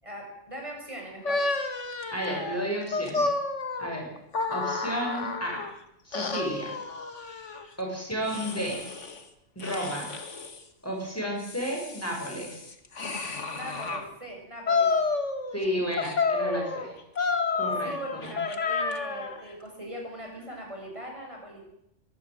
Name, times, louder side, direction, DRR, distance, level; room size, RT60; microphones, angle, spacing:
voice 1, 0.0-1.4 13.5-14.9 17.8-21.6, right 1 dB, 25° right, 0 dB, 6.9 m, -40 dB
sound 1, 1.2-5.7 6.1-7.7 8.3-9.2 9.6-10.6 11.2-14.1 14.7-15.6 16.0-19.4, left 4 dB, 75° left, 2.4 m, -30 dB
voice 2, 2.1-3.3 3.8-4.1 4.5-5.6 6.0-6.7 7.8-8.9 9.5-10.1 10.8-12.7 15.5-16.9 17.5-18.4, equal, 10° left, -1 dB, 6.7 m, -32 dB
23.0 x 15.5 x 9.1 m, 0.81 s
omnidirectional pair, 1.3 m